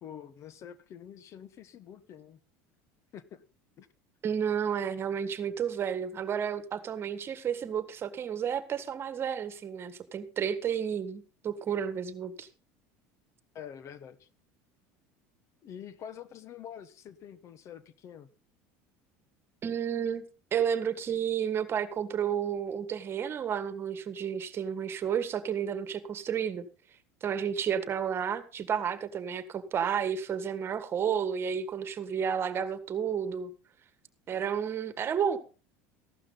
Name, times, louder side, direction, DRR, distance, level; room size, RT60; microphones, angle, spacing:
voice 1, 0.0-2.4 3.1-3.4 3.8-3.9 13.5-14.3 15.6-18.3, left 9 dB, 45° left, 1.2 m, -46 dB
voice 2, 4.2-12.5 19.6-20.2 20.5-26.7 27.2-33.5 34.3-35.4, right 8 dB, 35° right, 1.7 m, -31 dB
15.0 x 12.0 x 3.9 m
supercardioid pair, 110°, 7 cm